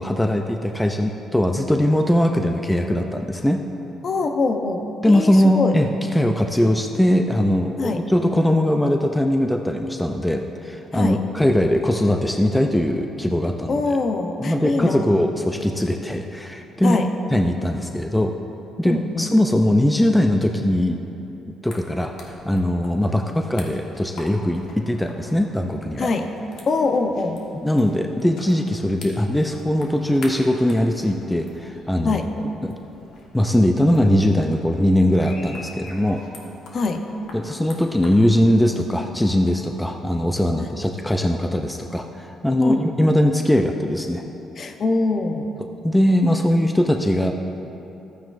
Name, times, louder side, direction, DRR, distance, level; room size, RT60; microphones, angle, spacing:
voice 1, 0.0-3.7 5.0-13.8 14.4-17.0 17.3-18.3 18.8-21.0 21.6-26.1 27.5-32.2 32.6-32.7 33.3-36.2 37.3-44.2 45.8-47.3, left 1 dB, 5° left, 4 dB, 0.4 m, -20 dB
voice 2, 4.0-5.7 7.8-8.0 10.9-11.2 13.7-15.2 16.8-17.1 18.8-19.2 26.0-26.3 26.7-27.4 32.0-32.3 36.7-37.0 42.6-42.8 44.6-45.5, left 3 dB, 45° left, 6 dB, 0.7 m, -23 dB
sound 1, 21.7-39.7, left 2 dB, 70° left, 1.4 m, -45 dB
13.5 x 9.1 x 2.5 m, 3.0 s
cardioid pair, 110°, 0 cm